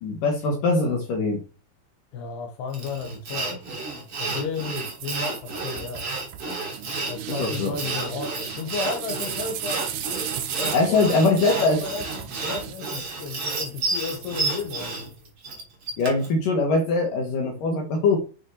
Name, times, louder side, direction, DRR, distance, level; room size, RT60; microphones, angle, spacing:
voice 1, 0.0-1.4 6.9-7.0 7.3-7.7 10.7-11.8 16.0-18.2, left 3 dB, 60° left, 2.9 m, -22 dB
voice 2, 2.1-3.8 4.2-6.1 7.1-9.8 10.5-15.1, left 5 dB, 75° left, 3.5 m, -33 dB
Sawing, 2.7-16.3, right 3 dB, 35° right, 3.6 m, -31 dB
sound 1, 4.7-15.3, right 10 dB, 75° right, 3.0 m, -37 dB
7.2 x 6.2 x 6.4 m
omnidirectional pair, 4.7 m